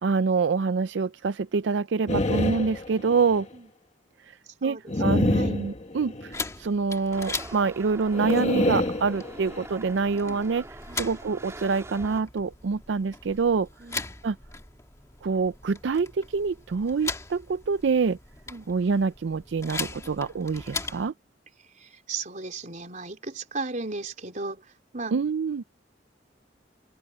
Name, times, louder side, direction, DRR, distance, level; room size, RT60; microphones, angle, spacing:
voice 1, 0.0-3.5 4.3-4.4 4.6-10.7 10.9-13.7 14.2-14.4 15.2-18.2 18.7-21.1 25.1-25.6, right 5 dB, 80° right, 0.5 m, -26 dB
sound 1, 2.1-3.4 4.9-6.4 8.1-9.7, left 1 dB, 40° left, 1.4 m, -27 dB
voice 2, 4.6-4.9 5.3-5.6 10.9-11.1 13.8-14.1 18.5-18.7 21.8-24.7 24.9-25.1, right 3 dB, 45° right, 4.0 m, -36 dB
sound 2, 6.3-21.1, left 3 dB, 15° left, 2.1 m, -39 dB
sound 3, 7.1-12.2, right 1 dB, 15° right, 3.3 m, -44 dB
open air
head